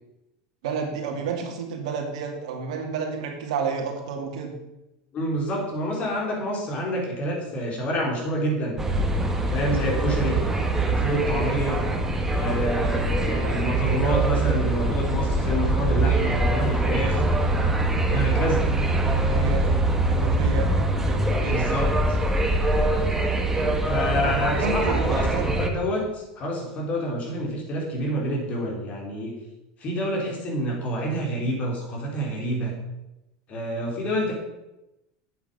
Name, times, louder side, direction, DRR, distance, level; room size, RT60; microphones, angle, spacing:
voice 1, 0.6-4.5 13.3-13.7 19.1-19.7 20.1-20.8 21.1-21.6 24.5-25.4, right 5 dB, 80° right, 2 dB, 2.3 m, -31 dB
voice 2, 5.1-8.8 9.5-10.4 10.9-11.8 12.3-17.2 18.1-18.6 21.4-22.2 23.9-29.3 29.8-32.7 33.5-34.3, equal, 40° left, 0 dB, 3.9 m, -28 dB
sound 1, 8.8-25.7, right 2 dB, 10° right, 1.5 m, -23 dB
8.5 x 8.3 x 5.5 m, 0.93 s
supercardioid pair, 105°, 3 cm